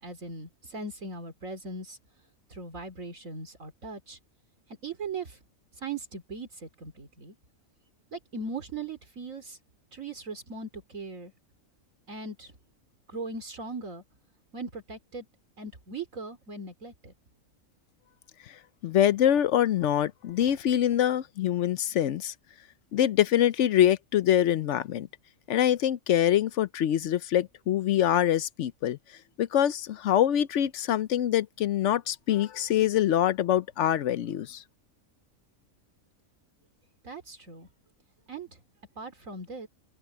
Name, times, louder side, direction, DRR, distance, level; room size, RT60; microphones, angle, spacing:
voice 1, 0.0-2.0 2.5-4.2 4.8-5.4 5.8-7.4 8.1-9.6 9.9-11.3 12.1-12.5 13.1-14.0 14.5-15.3 15.6-17.1 37.0-37.7 38.3-38.6 39.0-39.7, right 3 dB, 70° right, 3.3 m, -39 dB
voice 2, 18.8-22.3 22.9-25.1 25.5-29.0 29.4-34.6, left 11 dB, 65° left, 0.9 m, -24 dB
open air
omnidirectional pair, 1.4 m